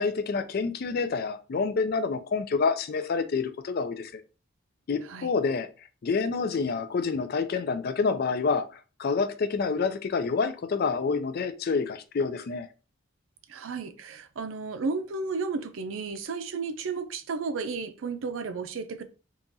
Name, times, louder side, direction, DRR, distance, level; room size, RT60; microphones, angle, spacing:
voice 1, 0.0-4.2 4.9-5.7 6.0-12.7, left 4 dB, 50° left, 0.4 m, -28 dB
voice 2, 13.5-19.0, right 4 dB, 85° right, 0.5 m, -33 dB
3.6 x 2.9 x 2.6 m
head